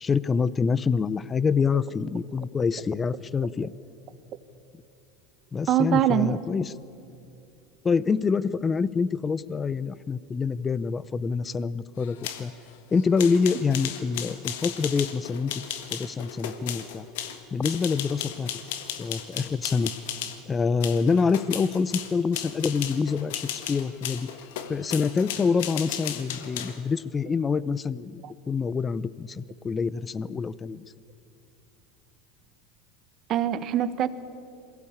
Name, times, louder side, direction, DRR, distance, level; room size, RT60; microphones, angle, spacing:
voice 1, 0.0-3.7 5.5-6.7 7.8-12.5 12.9-15.6 15.9-17.0 17.5-18.5 19.0-19.9 20.5-24.3 24.7-30.8, left 5 dB, 25° left, 19 dB, 0.6 m, -26 dB
voice 2, 5.7-6.4 28.2-28.3 33.3-34.1, right 10 dB, 50° right, 13 dB, 1.2 m, -23 dB
sound 1, 12.0-20.4 20.8-26.8, left 10 dB, 75° left, 1.6 m, -35 dB
22.0 x 16.0 x 8.7 m, 2.6 s
hypercardioid pair, 90°, 0 cm